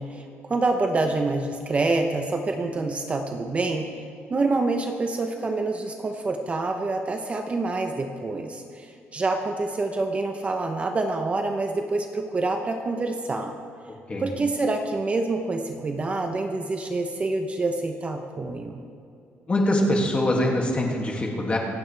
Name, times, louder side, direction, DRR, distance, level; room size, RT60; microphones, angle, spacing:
voice 1, 0.0-3.9 4.3-13.5 14.2-18.8, right 3 dB, 30° right, 4 dB, 0.9 m, -27 dB
voice 2, 19.5-21.6, left 1 dB, 25° left, 0 dB, 2.4 m, -23 dB
26.0 x 8.7 x 3.4 m, 2.6 s
cardioid pair, 110°, 4 cm